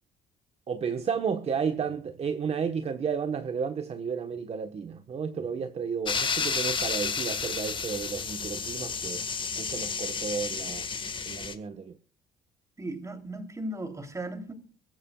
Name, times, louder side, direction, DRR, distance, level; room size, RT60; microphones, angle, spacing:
voice 1, 0.7-9.2 9.6-10.9 11.2-11.9, right 6 dB, 40° right, 1.2 m, -32 dB
sound 1, 6.1-11.5, left 5 dB, 30° left, 1.7 m, -31 dB
voice 2, 12.8-14.5, right 1 dB, 20° right, 3.2 m, -36 dB
23.5 x 13.0 x 2.4 m
cardioid pair, 110°, 17 cm